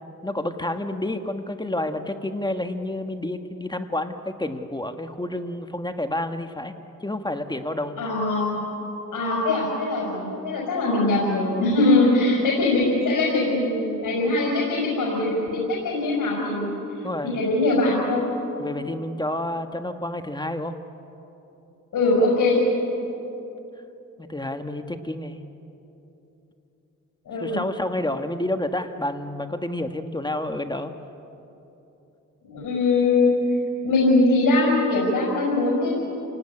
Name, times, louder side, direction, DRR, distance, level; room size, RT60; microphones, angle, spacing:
voice 1, 0.2-6.7 7.0-7.9 17.0-17.4 18.6-20.8 24.2-25.4 27.4-30.9, left 1 dB, 15° left, 7 dB, 1.4 m, -29 dB
voice 2, 8.0-8.6 9.1-16.7 17.3-18.2 21.9-22.6 27.3-27.6 32.4-33.3 33.8-35.9, left 2 dB, 80° left, -3 dB, 5.7 m, -21 dB
29.0 x 18.0 x 9.8 m, 3.0 s
cardioid pair, 85°, 31 cm